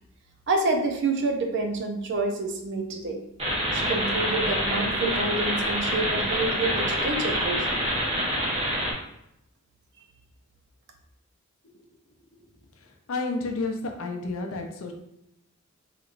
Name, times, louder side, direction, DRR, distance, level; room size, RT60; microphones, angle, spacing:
voice 1, 0.5-3.2 3.7-7.8, right 2 dB, 60° right, 4 dB, 0.5 m, -28 dB
sound 1, 3.4-8.9, equal, 30° right, 0.8 m, -26 dB
voice 2, 12.8-14.9, left 3 dB, 70° left, 3 dB, 0.6 m, -31 dB
4.1 x 2.9 x 2.5 m, 0.80 s
head